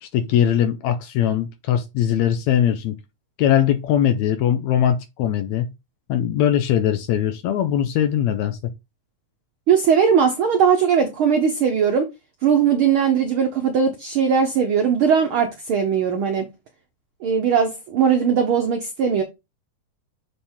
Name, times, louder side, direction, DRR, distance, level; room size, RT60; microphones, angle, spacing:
voice 1, 0.0-3.0 3.4-5.7 6.1-8.6, left 10 dB, 75° left, 2.0 m, -20 dB
voice 2, 9.7-12.1 12.4-16.5 17.2-19.2, right 7 dB, 75° right, 1.2 m, -19 dB
7.1 x 3.6 x 4.4 m
omnidirectional pair, 3.4 m